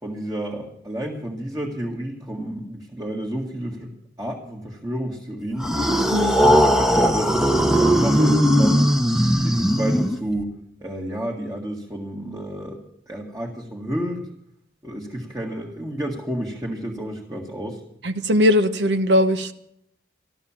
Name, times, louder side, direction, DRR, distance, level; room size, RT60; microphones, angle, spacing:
voice 1, 0.0-3.9 4.2-5.7 6.3-8.9 9.4-10.5 10.8-14.3 14.8-17.8, right 1 dB, 20° right, -1 dB, 1.8 m, -31 dB
sound 1, 5.6-10.4, equal, 5° right, 0.9 m, -18 dB
voice 2, 18.0-19.5, left 1 dB, 80° right, 9 dB, 0.9 m, -19 dB
15.5 x 12.5 x 7.2 m, 0.75 s
head